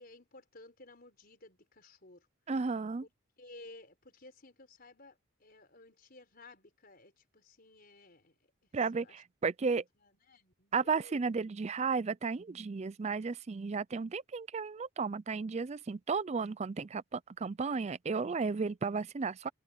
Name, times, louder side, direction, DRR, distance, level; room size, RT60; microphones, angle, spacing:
voice 1, 0.0-2.3 3.4-8.4 8.9-9.2 9.7-9.8 10.0-11.2, left 2 dB, 45° left, 4.7 m, -55 dB
voice 2, 2.5-3.1 8.7-9.8 10.7-19.5, right 4 dB, 30° right, 0.4 m, -34 dB
head